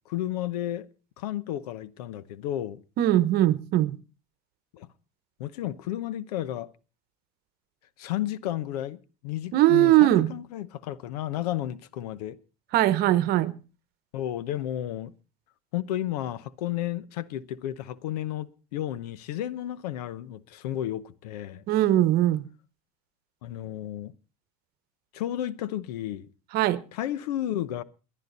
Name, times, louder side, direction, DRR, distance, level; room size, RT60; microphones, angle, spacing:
voice 1, 0.1-0.9 1.2-2.8 4.7-4.9 5.4-6.7 8.0-12.4 14.1-15.1 15.7-21.6 23.4-24.1 25.1-26.3 26.9-27.8, left 12 dB, 85° left, 0.9 m, -32 dB
voice 2, 3.0-4.0 9.5-10.3 12.7-13.5 21.7-22.4 26.5-26.8, right 14 dB, 55° right, 1.1 m, -20 dB
21.5 x 10.5 x 4.1 m
supercardioid pair, 115°, 20 cm